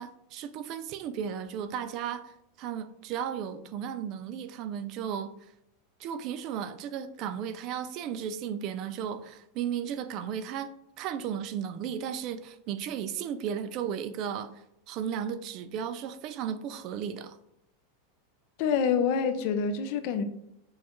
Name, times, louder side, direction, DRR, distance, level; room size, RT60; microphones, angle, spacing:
voice 1, 0.0-5.3 6.0-10.7 11.0-17.4, right 8 dB, 40° right, 0.3 m, -35 dB
voice 2, 18.6-20.2, left 6 dB, 50° left, 0.4 m, -26 dB
6.3 x 2.4 x 2.9 m
supercardioid pair, 155°, 0 cm